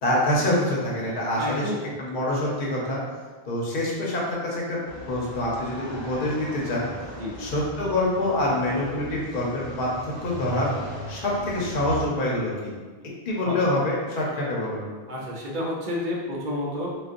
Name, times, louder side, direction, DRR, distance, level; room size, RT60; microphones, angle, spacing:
voice 1, 0.0-1.7 2.0-3.0 3.5-4.8 5.1-6.9 7.4-10.7 11.1-12.8 13.3-14.8, left 1 dB, 55° left, -4 dB, 0.9 m, -26 dB
voice 2, 1.4-1.8 7.2-7.5 13.4-13.6 15.1-17.0, left 1 dB, 55° right, -4 dB, 0.7 m, -30 dB
sound 1, 4.8-12.1, right 1 dB, 30° left, 0.6 m, -39 dB
3.8 x 2.4 x 2.5 m, 1.4 s
omnidirectional pair, 1.1 m